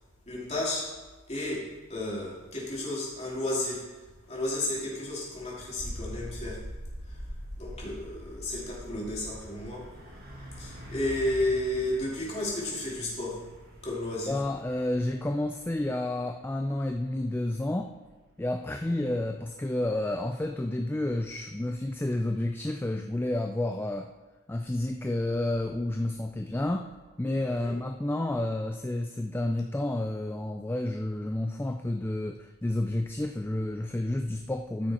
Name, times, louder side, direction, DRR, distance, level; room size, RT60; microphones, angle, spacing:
voice 1, 0.3-0.9 1.3-3.9 4.3-6.6 7.1-7.2 7.6-9.9 10.6-13.4 13.8-14.4 18.8-19.1 27.5-27.8, left 1 dB, 30° left, -5 dB, 2.9 m, -32 dB
sound 1, 5.7-15.9, equal, 25° right, 2.1 m, -44 dB
Truck, 6.7-20.7, equal, 45° right, 1.9 m, -50 dB
voice 2, 14.3-17.9 18.4-24.1 24.5-26.9 27.2-34.9, left 1 dB, 10° left, 4 dB, 0.3 m, -30 dB
14.5 x 6.4 x 4.3 m, 1.3 s
head